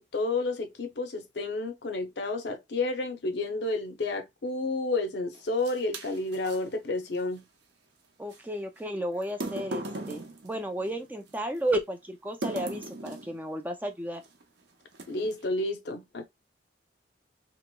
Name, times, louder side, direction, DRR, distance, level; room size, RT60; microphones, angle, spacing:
voice 1, 0.0-7.4 15.1-16.2, left 2 dB, 70° left, 0.6 m, -31 dB
sound 1, 5.3-6.6 8.3-8.4 9.2-11.4 12.4-13.4 14.2-14.4 14.9-15.4, right 2 dB, 70° right, 0.7 m, -38 dB
voice 2, 8.2-14.2, right 1 dB, 10° right, 0.4 m, -33 dB
2.9 x 2.9 x 2.2 m
head